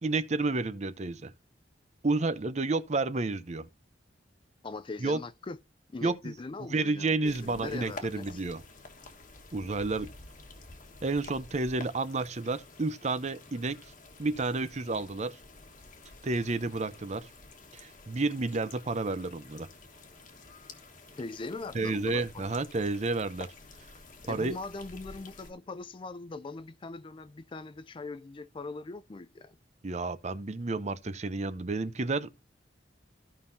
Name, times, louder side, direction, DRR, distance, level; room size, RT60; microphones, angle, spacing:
voice 1, 0.0-1.3 2.0-3.7 5.0-5.2 6.0-6.3 6.7-8.6 9.5-10.1 11.0-13.8 14.2-15.4 16.2-17.3 17.7-19.7 21.7-23.5 24.3-24.6 29.8-32.3, right 3 dB, 40° right, 0.7 m, -30 dB
voice 2, 4.6-5.6 5.9-8.4 21.2-22.5 24.2-29.6, left 3 dB, 30° left, 0.4 m, -41 dB
sound 1, 7.2-25.5, left 3 dB, 45° left, 1.4 m, -50 dB
15.5 x 5.4 x 2.7 m
head